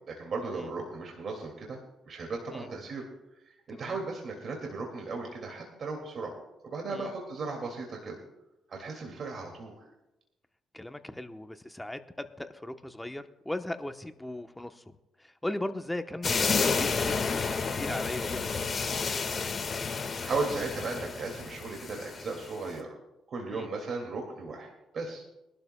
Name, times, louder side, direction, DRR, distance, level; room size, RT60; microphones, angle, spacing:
voice 1, 0.1-1.8 2.1-3.1 3.5-6.3 6.6-8.2 8.7-9.9 20.2-23.0 23.3-25.2, right 3 dB, 55° right, 1 dB, 2.2 m, -36 dB
voice 2, 10.7-14.8 15.2-18.7 23.5-23.7, left 1 dB, 10° left, 8 dB, 0.9 m, -38 dB
sound 1, 16.2-22.5, left 5 dB, 40° left, 1.5 m, -31 dB
24.0 x 12.0 x 2.2 m, 0.96 s
cardioid pair, 90°, 0 cm